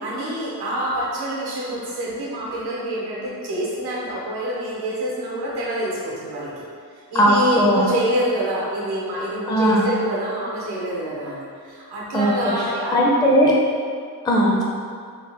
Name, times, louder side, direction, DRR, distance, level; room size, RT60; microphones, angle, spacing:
voice 1, 0.0-6.5 7.1-13.0, right 1 dB, 90° right, -6 dB, 0.9 m, -26 dB
voice 2, 7.1-7.8 9.5-9.9 12.1-12.3 12.9-13.5 14.2-14.6, equal, 10° left, -3 dB, 0.4 m, -17 dB
3.1 x 2.1 x 3.3 m, 2.2 s
cardioid pair, 65°, 38 cm